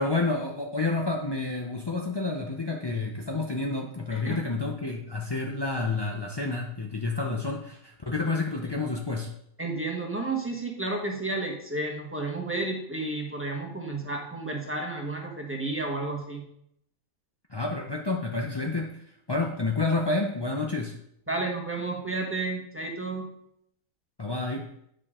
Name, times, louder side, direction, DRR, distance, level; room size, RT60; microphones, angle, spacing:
voice 1, 0.0-9.3 17.5-18.9 19.3-21.0 24.2-24.7, left 3 dB, 45° left, 0 dB, 0.3 m, -29 dB
voice 2, 4.1-4.4 9.6-16.4 21.3-23.3, right 2 dB, 10° right, 0 dB, 1.1 m, -32 dB
9.7 x 5.1 x 3.7 m, 0.74 s
omnidirectional pair, 1.5 m